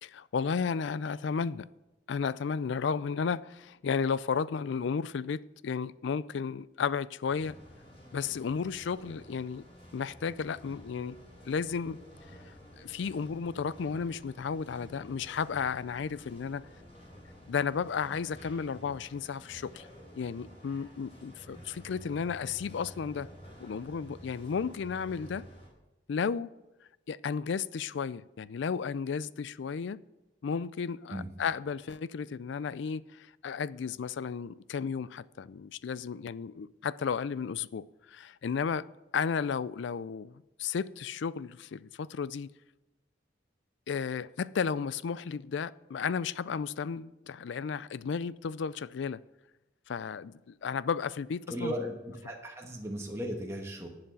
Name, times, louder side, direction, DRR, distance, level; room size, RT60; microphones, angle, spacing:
voice 1, 0.0-1.7 2.1-7.6 8.1-9.6 9.9-11.2 11.5-12.0 12.5-16.7 17.5-19.9 20.2-23.3 23.6-25.4 26.1-26.5 27.1-30.0 30.4-38.9 39.1-42.5 43.9-49.2 49.9-51.7, left 6 dB, 70° left, 0.4 m, -33 dB
sound 1, 7.3-25.7, equal, 35° left, 4.8 m, -51 dB
voice 2, 51.5-53.9, equal, 15° right, 1.4 m, -36 dB
11.0 x 8.0 x 7.0 m
head